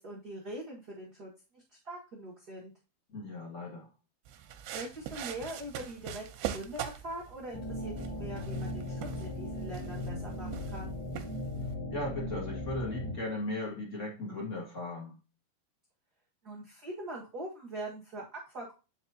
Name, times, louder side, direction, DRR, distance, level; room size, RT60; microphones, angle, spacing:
voice 1, 0.0-2.7 4.7-6.2 6.5-10.9 16.4-18.7, right 1 dB, 55° right, -5 dB, 1.0 m, -42 dB
voice 2, 3.1-3.9 11.6-15.1, left 2 dB, 30° left, -4 dB, 1.4 m, -37 dB
sound 1, 4.3-11.7, right 10 dB, 85° right, 2.7 m, -43 dB
sound 2, 7.5-13.1, left 1 dB, 45° left, 4.5 m, -37 dB
9.5 x 4.9 x 2.8 m, 0.32 s
omnidirectional pair, 4.7 m